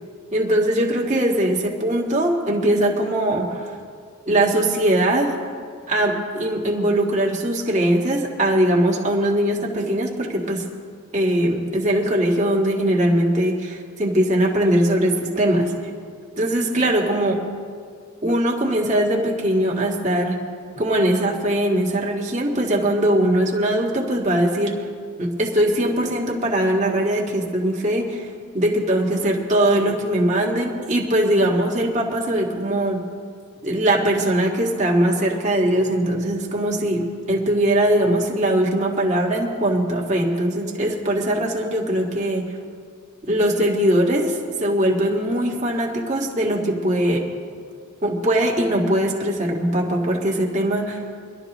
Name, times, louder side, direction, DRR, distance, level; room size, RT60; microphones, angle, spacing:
voice 1, 0.3-3.7 4.2-5.4 5.9-10.6 11.1-15.7 16.4-17.4 18.2-20.4 20.7-24.7 25.2-28.3 28.5-33.1 33.6-42.5 43.2-47.2 48.0-51.0, right 1 dB, 35° right, -2 dB, 1.7 m, -21 dB
23.5 x 12.0 x 3.0 m, 2.1 s
head